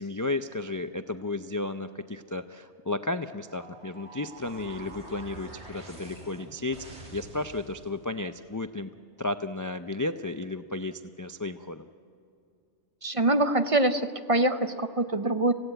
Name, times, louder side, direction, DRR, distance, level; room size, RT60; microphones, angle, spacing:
voice 1, 0.0-8.9 9.2-11.9, left 2 dB, 35° left, 9 dB, 0.3 m, -33 dB
sound 1, 3.5-8.0, right 2 dB, 65° right, 3.5 m, -46 dB
voice 2, 13.0-15.5, right 2 dB, 35° right, 9 dB, 0.7 m, -24 dB
27.5 x 16.0 x 9.0 m, 2.5 s
omnidirectional pair, 1.2 m